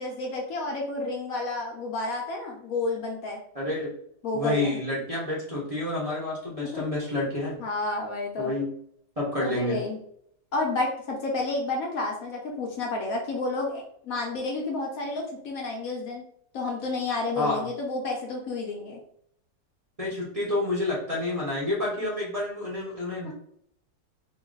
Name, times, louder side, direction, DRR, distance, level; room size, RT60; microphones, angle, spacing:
voice 1, 0.0-3.4 4.2-4.8 6.6-6.8 7.6-8.5 9.4-10.0 10.5-16.2 16.5-19.0 23.2-23.3, left 2 dB, 65° left, 0 dB, 1.1 m, -30 dB
voice 2, 3.5-3.9 4.3-7.6 8.4-8.7 9.2-9.8 17.3-17.7 20.0-23.3, left 2 dB, 25° right, -7 dB, 1.0 m, -29 dB
3.8 x 2.2 x 3.8 m, 0.67 s
omnidirectional pair, 1.7 m